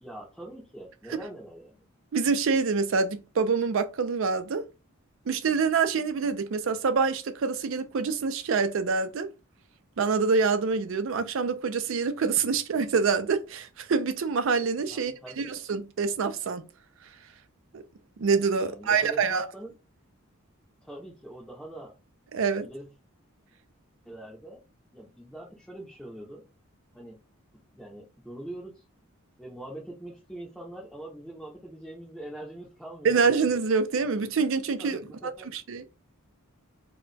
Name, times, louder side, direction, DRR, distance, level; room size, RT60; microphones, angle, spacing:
voice 1, 0.0-1.8 14.9-15.5 18.6-19.7 20.8-21.9 22.6-22.9 24.0-24.6 24.9-26.4 26.9-27.2 27.7-28.8 29.4-33.3 34.8-35.5, right 1 dB, ahead, 0.6 m, -43 dB
voice 2, 2.1-4.6 5.3-9.3 10.0-16.6 17.7-17.8 18.2-19.4 22.3-22.7 33.0-35.0 35.5-35.9, right 5 dB, 60° right, 0.4 m, -26 dB
2.2 x 2.2 x 3.8 m
head